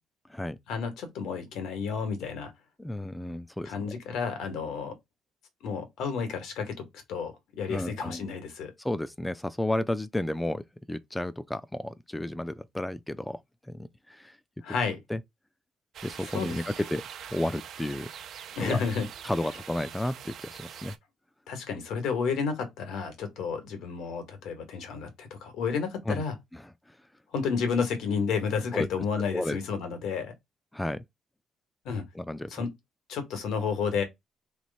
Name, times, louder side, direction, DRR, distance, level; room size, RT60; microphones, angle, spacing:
voice 1, 0.7-2.5 3.6-4.9 5.6-8.7 14.6-15.0 16.3-16.6 18.5-19.1 21.5-26.3 27.3-30.3 31.8-32.1 32.5-32.7 33.1-34.0, left 5 dB, 85° left, 1.5 m, -31 dB
voice 2, 2.8-3.9 7.7-8.3 8.8-13.4 13.7-14.4 15.1-15.2 16.0-17.0 17.3-18.1 18.6-18.8 19.2-21.0 26.1-26.2 26.5-26.6 28.7-28.9 29.3-29.6 30.7-31.0 32.1-32.6, left 1 dB, 10° left, 0.4 m, -32 dB
sound 1, 15.9-21.0, right 9 dB, 70° right, 0.6 m, -43 dB
3.2 x 3.2 x 4.1 m
cardioid pair, 90°, 0 cm